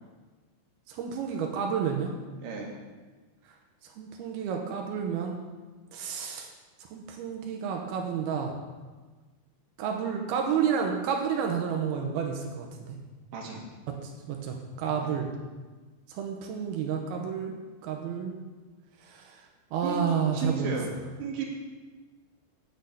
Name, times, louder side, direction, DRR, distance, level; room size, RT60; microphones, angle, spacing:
voice 1, 0.9-2.1 4.0-5.4 5.9-6.5 6.9-8.5 9.8-13.0 13.9-15.3 16.1-17.5 17.8-18.4 19.1-19.4 19.7-20.8, right 7 dB, 90° right, 2 dB, 2.2 m, -30 dB
voice 2, 2.4-2.8 13.3-13.7 15.0-15.1 19.8-20.0 20.3-20.9 21.2-21.4, right 5 dB, 60° right, -1 dB, 2.4 m, -34 dB
7.0 x 6.5 x 7.8 m, 1.3 s
omnidirectional pair, 5.6 m